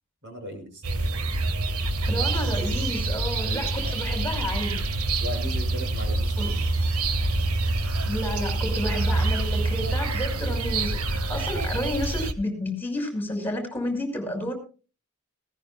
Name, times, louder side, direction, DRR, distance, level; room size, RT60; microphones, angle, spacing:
voice 1, 0.2-0.8 5.2-6.7, equal, 55° right, 5 dB, 5.9 m, -37 dB
sound 1, 0.8-12.3, right 2 dB, 85° right, 1.4 m, -26 dB
voice 2, 2.1-4.8 6.4-6.5 8.1-14.5, left 1 dB, 10° left, 5 dB, 5.6 m, -31 dB
20.0 x 17.5 x 2.2 m, 0.35 s
head